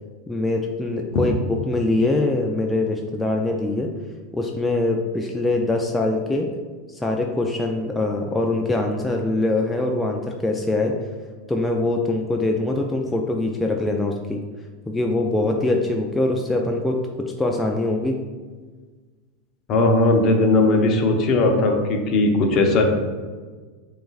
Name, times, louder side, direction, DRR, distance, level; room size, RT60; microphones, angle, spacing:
voice 1, 0.3-3.9 4.3-6.5 6.9-11.0 11.5-14.4 14.9-18.2, left 2 dB, 10° left, 1 dB, 0.4 m, -23 dB
voice 2, 19.7-22.8, left 2 dB, 45° left, 3 dB, 0.7 m, -18 dB
7.4 x 2.5 x 2.4 m, 1.4 s
hypercardioid pair, 95°, 0 cm